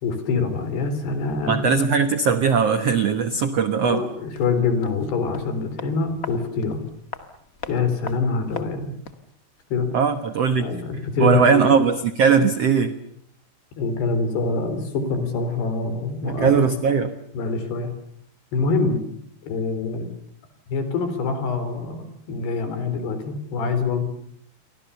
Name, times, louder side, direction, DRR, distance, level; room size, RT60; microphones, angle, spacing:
voice 1, 0.0-1.7 3.8-6.8 7.7-9.0 9.7-9.9 10.6-11.6 13.8-16.5 17.3-17.9 18.5-19.0 19.4-20.1 20.7-24.0, left 4 dB, 75° left, 10 dB, 5.8 m, -25 dB
voice 2, 1.5-4.0 9.9-10.7 11.2-12.9 16.3-17.1, right 6 dB, 70° right, 10 dB, 1.4 m, -19 dB
sound 1, 4.3-9.3 9.6-9.7, left 4 dB, 50° left, 1.0 m, -39 dB
29.5 x 24.0 x 7.0 m, 0.68 s
omnidirectional pair, 4.8 m